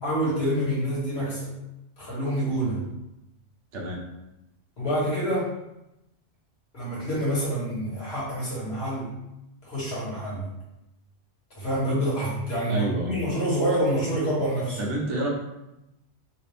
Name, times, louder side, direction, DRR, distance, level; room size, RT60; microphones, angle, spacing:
voice 1, 0.0-1.5 2.0-2.8 4.8-5.5 6.7-9.1 9.6-10.5 11.6-14.8, equal, 60° left, -7 dB, 1.6 m, -27 dB
voice 2, 3.7-4.0 12.7-13.1 14.8-15.3, right 1 dB, 75° right, -2 dB, 1.1 m, -28 dB
3.4 x 2.5 x 3.4 m, 0.91 s
omnidirectional pair, 1.2 m